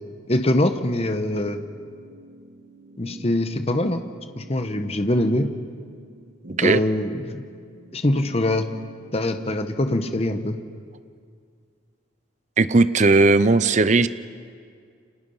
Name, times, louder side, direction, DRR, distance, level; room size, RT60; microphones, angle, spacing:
voice 1, 0.3-1.6 3.0-4.0 4.4-5.5 6.6-7.4 7.9-8.7 9.1-10.6, left 1 dB, 30° left, 8 dB, 1.0 m, -23 dB
sound 1, 1.4-10.4, right 1 dB, 55° right, 2.4 m, -45 dB
voice 2, 12.6-14.1, right 3 dB, 35° right, 14 dB, 0.6 m, -17 dB
30.0 x 26.0 x 5.6 m, 2.2 s
head